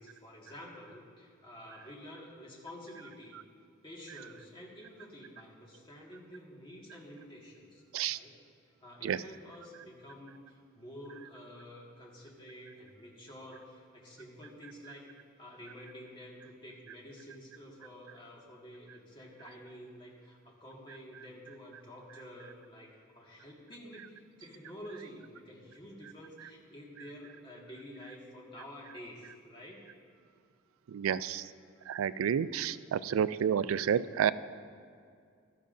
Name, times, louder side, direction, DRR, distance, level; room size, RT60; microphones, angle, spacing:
voice 1, 0.0-3.4 3.8-8.3 8.8-15.1 15.4-29.8 33.1-33.2, equal, 25° left, -3 dB, 1.7 m, -50 dB
voice 2, 30.9-31.5 31.9-34.3, right 8 dB, 80° right, 16 dB, 0.3 m, -30 dB
15.5 x 12.0 x 2.6 m, 2.2 s
head